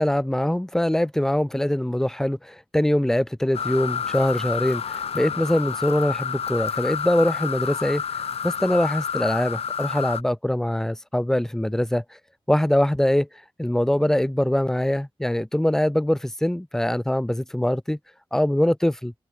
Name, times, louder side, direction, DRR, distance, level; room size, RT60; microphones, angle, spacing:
voice 1, 0.0-8.0 8.4-12.0 12.5-13.3 13.6-18.0 18.3-19.1, left 1 dB, 5° left, 0.4 m, -23 dB
sound 1, 3.5-10.2, left 7 dB, 75° left, 0.7 m, -29 dB
wide cardioid pair, 135°, 10 cm